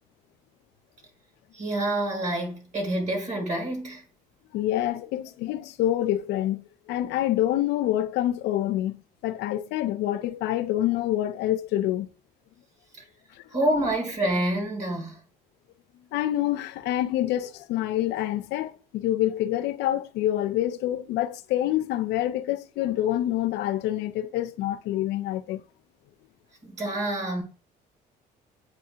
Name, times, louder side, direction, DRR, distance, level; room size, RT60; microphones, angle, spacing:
voice 1, 1.5-4.0 13.5-15.2 26.6-27.4, right 1 dB, 45° right, 2.3 m, -27 dB
voice 2, 4.5-12.1 16.1-25.6, left 13 dB, 85° left, 0.5 m, -27 dB
8.1 x 2.8 x 2.3 m
cardioid pair, 110°, 17 cm